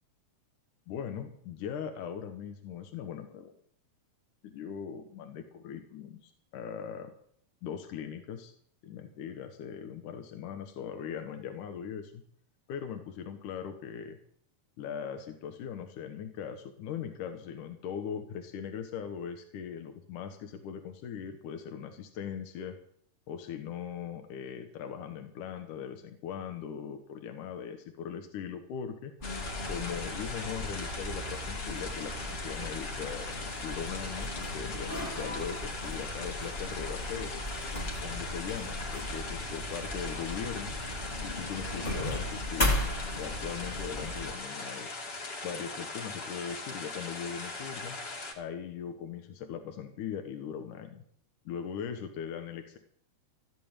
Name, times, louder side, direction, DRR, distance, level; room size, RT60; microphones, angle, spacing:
voice 1, 0.9-3.5 4.4-7.1 7.6-8.5 8.8-12.2 12.7-14.2 14.8-22.8 23.3-29.4 29.7-33.3 33.6-37.4 38.0-40.8 41.2-44.9 45.4-48.0 48.4-51.0 51.5-52.8, left 8 dB, 80° left, 6 dB, 2.7 m, -40 dB
sound 1, 29.2-48.3, left 3 dB, 50° left, 3.3 m, -40 dB
sound 2, 29.2-44.3, left 1 dB, 15° left, 2.3 m, -36 dB
14.5 x 8.6 x 8.9 m, 0.63 s
omnidirectional pair, 3.6 m